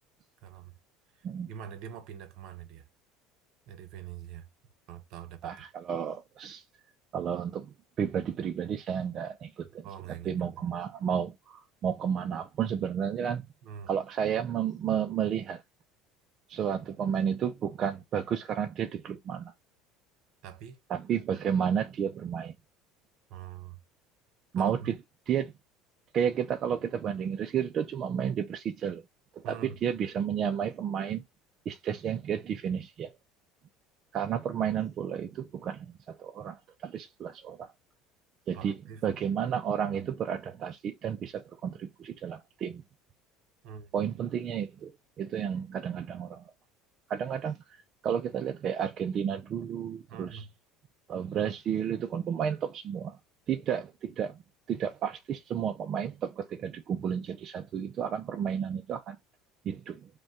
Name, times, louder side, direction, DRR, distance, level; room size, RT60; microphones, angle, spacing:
voice 1, 0.4-0.7 1.5-2.8 3.7-4.5 4.9-5.5 9.8-10.7 13.6-13.9 20.4-20.8 23.3-23.8 24.6-24.9 29.4-29.7 38.5-39.0 39.9-40.0 43.6-43.9 50.1-50.5, right 8 dB, 60° right, 0.8 m, -44 dB
voice 2, 5.4-6.6 7.1-13.5 13.9-15.6 16.5-19.5 20.9-22.5 24.5-25.0 25.3-25.5 26.1-29.0 29.4-31.2 31.7-33.1 34.1-37.7 38.5-42.8 43.9-44.9 45.2-46.5 47.1-50.5 51.1-53.2 53.5-54.4 54.7-59.2 59.6-60.1, right 8 dB, 40° right, 0.4 m, -32 dB
5.2 x 2.2 x 3.6 m
cardioid pair, 145°, 0 cm